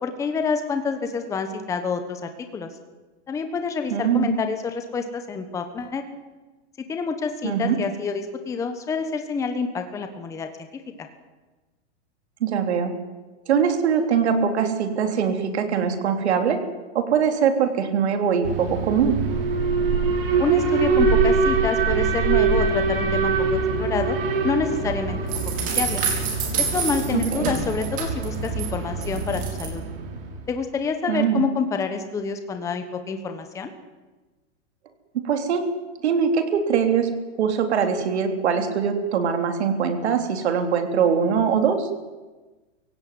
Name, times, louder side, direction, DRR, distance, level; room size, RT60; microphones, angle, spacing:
voice 1, 0.0-2.7 3.3-6.0 6.9-11.1 20.4-24.2 24.4-25.2 25.6-26.0 26.6-29.8 30.5-33.7, left 5 dB, 10° left, 7 dB, 1.1 m, -28 dB
voice 2, 3.9-4.3 7.4-7.8 12.4-12.9 13.5-16.6 16.9-19.2 27.1-27.5 31.1-31.4 35.2-35.7 36.0-37.1 37.4-41.9, right 7 dB, 70° right, 6 dB, 3.5 m, -22 dB
Alarm, 18.4-30.5, right 5 dB, 50° right, 4.1 m, -24 dB
sound 1, 25.3-28.7 29.0-29.7, right 6 dB, 25° right, 4.6 m, -28 dB
23.0 x 16.5 x 9.4 m, 1.3 s
supercardioid pair, 165°, 35 cm